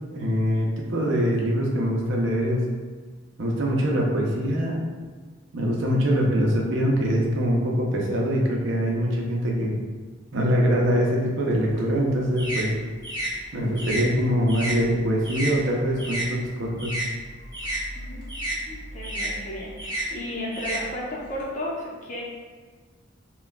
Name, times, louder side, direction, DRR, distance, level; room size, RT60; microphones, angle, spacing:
voice 1, 0.1-2.6 3.4-4.8 5.5-9.7 10.3-12.7 13.5-17.0, equal, 65° right, -1 dB, 0.7 m, -23 dB
sound 1, 11.5-16.3 16.6-21.4, right 1 dB, 20° right, 0.7 m, -32 dB
voice 2, 17.9-18.3 18.7-22.2, left 1 dB, 35° left, -5 dB, 0.8 m, -34 dB
5.7 x 2.2 x 2.2 m, 1.5 s
head